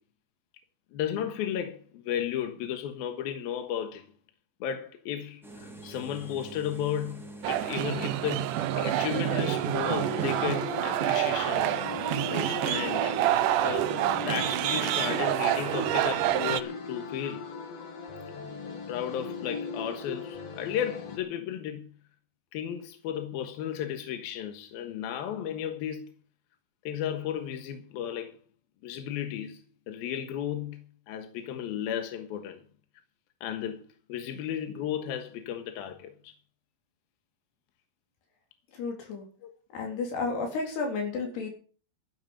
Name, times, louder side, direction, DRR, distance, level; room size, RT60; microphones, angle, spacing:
voice 1, 0.9-4.0 4.6-11.8 12.3-13.2 13.6-17.4 18.9-21.9 22.5-26.1 26.8-28.3 28.8-32.6 33.4-33.8 34.1-36.4 39.4-39.5, left 9 dB, 75° left, 3.1 m, -34 dB
sound 1, 5.4-10.5, right 2 dB, ahead, 2.3 m, -45 dB
sound 2, 7.4-16.6, right 13 dB, 75° right, 1.9 m, -27 dB
sound 3, 9.9-21.2, left 4 dB, 45° left, 2.8 m, -39 dB
voice 2, 38.7-39.3 39.7-41.5, left 4 dB, 90° left, 5.8 m, -32 dB
12.5 x 10.5 x 7.2 m
omnidirectional pair, 4.5 m